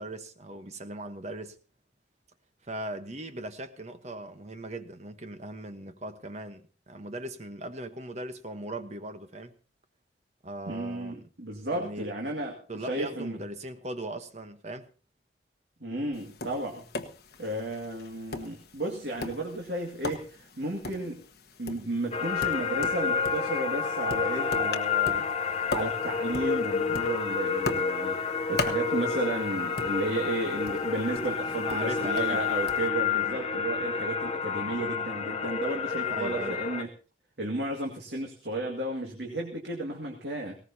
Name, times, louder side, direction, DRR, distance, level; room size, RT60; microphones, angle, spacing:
voice 1, 0.0-1.6 2.6-9.5 10.4-11.3 11.7-12.1 12.7-14.9 31.4-32.4 33.1-33.4 36.1-36.6, right 1 dB, 40° right, 1.1 m, -39 dB
voice 2, 10.7-13.4 15.8-16.8 17.4-21.2 21.6-25.3 25.7-36.9 37.4-40.5, right 2 dB, 75° right, 2.1 m, -33 dB
Tap, 16.1-32.9, left 2 dB, 60° left, 1.2 m, -40 dB
sound 1, 22.1-36.8, left 6 dB, 35° left, 0.8 m, -29 dB
19.0 x 18.0 x 2.8 m
head